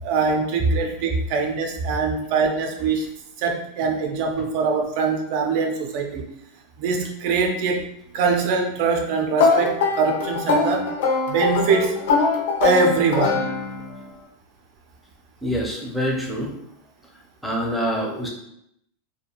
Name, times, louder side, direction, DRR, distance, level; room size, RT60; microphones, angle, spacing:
voice 1, 0.0-3.1 3.4-6.3 6.8-7.8 8.1-10.9 11.3-12.0 12.6-13.5, right 4 dB, 50° right, 2 dB, 0.5 m, -23 dB
sound 1, 9.4-14.0, left 4 dB, 80° left, 0.5 m, -22 dB
voice 2, 15.4-16.5 17.4-18.3, equal, 5° left, -2 dB, 0.6 m, -25 dB
2.5 x 2.2 x 2.9 m, 0.76 s
supercardioid pair, 145°, 0 cm